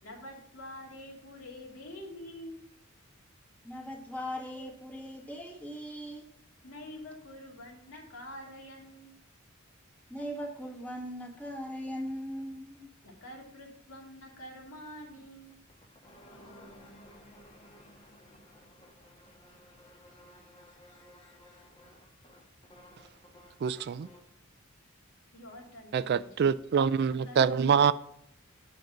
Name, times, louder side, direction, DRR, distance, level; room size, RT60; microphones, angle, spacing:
voice 1, 0.0-2.6 6.6-9.2 13.0-15.6 25.3-26.5 27.1-27.9, left 1 dB, 80° left, 2.6 m, -47 dB
voice 2, 3.6-6.2 10.1-12.9, equal, 10° left, 1.5 m, -39 dB
sound 1, 15.5-24.4, left 1 dB, 25° left, 1.2 m, -56 dB
voice 3, 23.6-24.1 25.9-27.9, right 7 dB, 50° right, 0.3 m, -25 dB
7.8 x 5.3 x 6.3 m
head